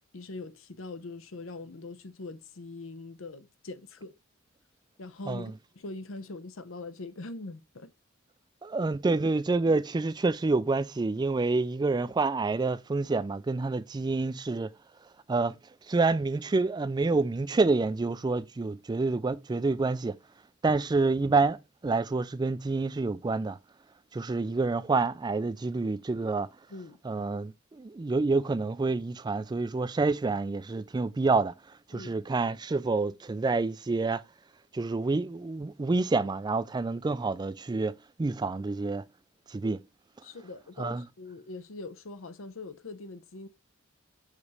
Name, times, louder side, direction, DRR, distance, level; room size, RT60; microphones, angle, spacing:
voice 1, 0.1-4.2 5.0-7.9 26.7-27.0 31.9-32.2 40.2-43.5, left 3 dB, 75° left, 0.7 m, -42 dB
voice 2, 8.6-14.7 15.3-15.6 15.9-20.2 20.6-21.6 21.8-23.6 24.1-26.5 27.0-31.5 31.9-34.2 34.7-37.9 38.2-39.0 39.5-39.8 40.8-41.0, right 3 dB, 20° right, 0.3 m, -28 dB
5.0 x 4.1 x 4.8 m
head